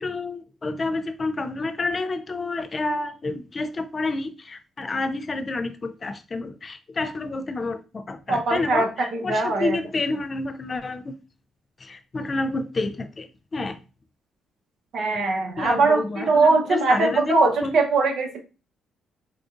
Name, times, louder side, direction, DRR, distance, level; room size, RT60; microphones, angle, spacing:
voice 1, 0.0-11.2 11.8-13.8 15.6-17.8, left 3 dB, 35° left, 0.4 m, -29 dB
voice 2, 8.3-9.8 14.9-18.4, right 3 dB, 65° right, 1.0 m, -21 dB
4.7 x 2.4 x 2.5 m
cardioid pair, 90°, 0 cm